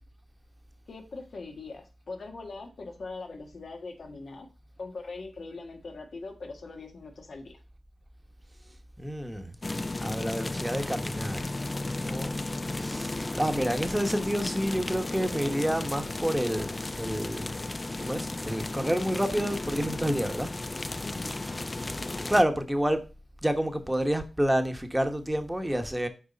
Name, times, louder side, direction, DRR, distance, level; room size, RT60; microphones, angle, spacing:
voice 1, 0.9-4.5 4.8-7.6 21.0-21.4, left 3 dB, 65° left, 1.6 m, -41 dB
voice 2, 9.0-9.5 10.0-11.5 12.0-12.4 12.7-17.5 18.0-20.5 22.3-23.0 23.4-26.1, equal, 10° right, 1.2 m, -29 dB
sound 1, 9.6-22.4, left 2 dB, 35° left, 0.4 m, -34 dB
6.5 x 4.7 x 4.1 m
cardioid pair, 45°, 0 cm